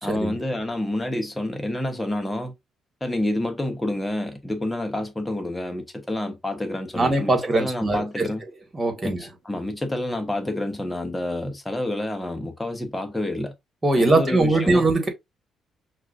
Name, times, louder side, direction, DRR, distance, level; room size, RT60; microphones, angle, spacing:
voice 1, 0.0-2.5 3.0-8.4 9.0-13.5 13.9-14.9, left 1 dB, 10° left, 0.9 m, -28 dB
voice 2, 6.9-8.2 8.7-9.2 13.8-15.1, right 2 dB, 20° right, 1.6 m, -21 dB
5.7 x 2.5 x 2.5 m
cardioid pair, 90°, 0 cm